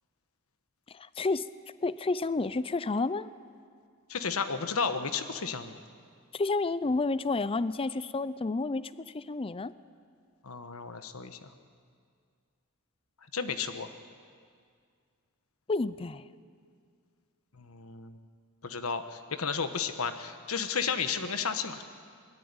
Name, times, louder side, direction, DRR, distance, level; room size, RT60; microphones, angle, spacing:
voice 1, 0.9-1.5 1.8-3.3 6.3-9.7 15.7-16.2, left 3 dB, 25° left, 16 dB, 0.5 m, -30 dB
voice 2, 4.1-5.8 10.4-11.5 13.3-13.9 17.6-18.2 18.6-21.8, left 5 dB, 75° left, 9 dB, 1.3 m, -33 dB
21.0 x 13.5 x 9.7 m, 2.1 s
head